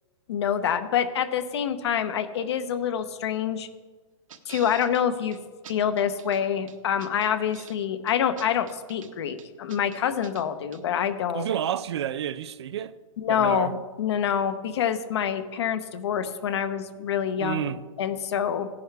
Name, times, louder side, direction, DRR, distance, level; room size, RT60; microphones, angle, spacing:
voice 1, 0.3-3.7 4.5-5.4 5.7-11.5 13.2-18.7, left 8 dB, 55° left, 0.9 m, -26 dB
sound 1, 4.3-5.0 5.3-5.4 5.6-6.4 6.7-7.8 8.1-9.1 9.4-10.4 10.7-10.8, right 8 dB, 75° right, 1.3 m, -46 dB
voice 2, 11.3-12.9 13.3-13.7 17.4-17.8, right 10 dB, 55° right, 0.5 m, -30 dB
15.5 x 11.0 x 3.4 m
hypercardioid pair, 165°, 17 cm